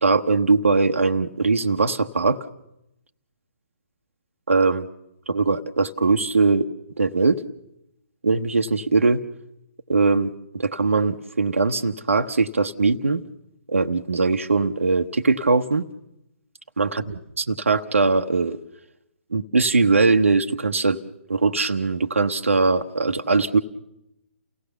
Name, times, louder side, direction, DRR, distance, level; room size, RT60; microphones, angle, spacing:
voice 1, 0.0-2.5 4.5-4.9 5.3-6.7 7.0-7.4 8.2-9.2 9.9-13.2 13.7-15.8 16.8-18.6 19.3-21.0 21.3-23.6, right 3 dB, 80° right, 5 dB, 0.9 m, -21 dB
29.5 x 17.0 x 6.9 m, 0.85 s
figure-of-eight pair, 135°, 7 cm